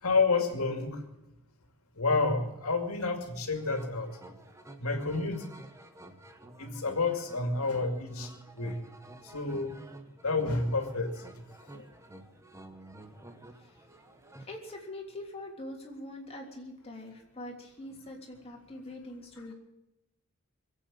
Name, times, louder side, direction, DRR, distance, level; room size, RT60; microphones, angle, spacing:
voice 1, 0.0-1.0 1.9-4.1 4.8-5.5 6.6-8.9 9.2-9.8 10.2-11.8 17.9-18.0, left 3 dB, 80° left, 6 dB, 2.4 m, -30 dB
sound 1, 3.5-14.5, right 1 dB, 15° right, 1.2 m, -51 dB
voice 2, 14.4-19.5, left 1 dB, 30° left, 0 dB, 3.2 m, -43 dB
22.5 x 8.5 x 7.6 m, 0.90 s
head